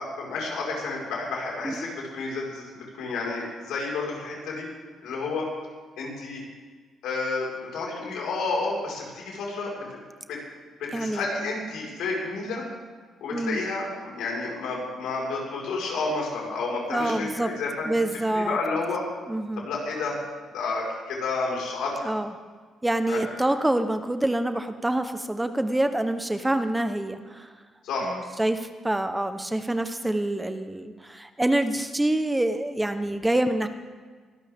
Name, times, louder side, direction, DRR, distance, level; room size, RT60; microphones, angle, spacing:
voice 1, 0.0-4.7 5.0-5.5 6.0-6.4 7.0-10.0 10.3-10.4 10.8-12.6 13.2-18.0 18.3-19.0 19.6-20.2 20.5-22.0 23.1-23.2 27.8-28.2, left 3 dB, 85° left, -2 dB, 4.9 m, -30 dB
voice 2, 10.9-11.2 13.3-13.6 16.9-17.5 17.8-18.6 19.3-19.7 22.0-22.3 22.8-27.5 28.1-33.7, right 1 dB, 10° right, 9 dB, 1.0 m, -26 dB
23.5 x 12.5 x 3.6 m, 1.5 s
cardioid pair, 90°, 0 cm